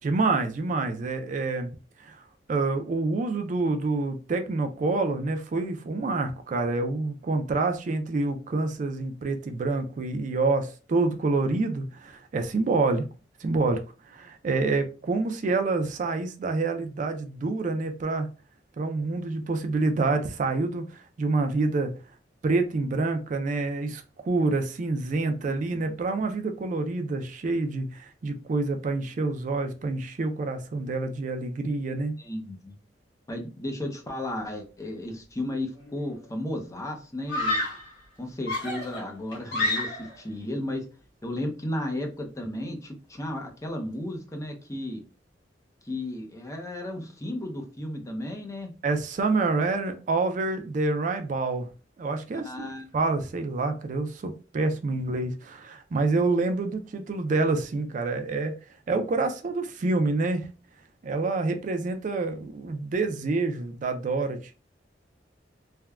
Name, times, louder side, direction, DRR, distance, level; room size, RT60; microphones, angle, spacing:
voice 1, 0.0-1.7 2.0-2.2 2.5-13.1 13.4-13.8 14.1-18.3 18.8-21.9 22.4-32.2 48.8-51.7 52.0-52.7 52.9-58.6 58.9-60.5 61.0-64.5, right 3 dB, 45° right, 0.3 m, -27 dB
voice 2, 25.4-25.9 32.2-32.7 33.3-37.6 38.2-40.8 41.2-45.0 45.8-48.7 52.4-52.9, left 1 dB, 20° left, 0.5 m, -34 dB
Screaming, 35.7-36.2 37.3-37.9 38.5-40.2, left 2 dB, 80° left, 1.5 m, -29 dB
3.4 x 2.1 x 2.2 m
head